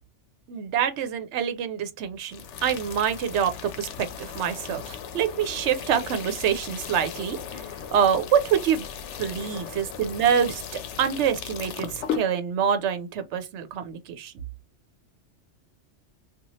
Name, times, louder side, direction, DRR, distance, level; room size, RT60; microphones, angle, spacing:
voice 1, 0.5-7.6 7.9-8.9 9.2-10.6 11.0-14.3, right 8 dB, 75° right, 0.9 m, -26 dB
sound 1, 2.3-12.2, left 8 dB, 75° left, 0.9 m, -36 dB
2.9 x 2.4 x 2.7 m
omnidirectional pair, 1.2 m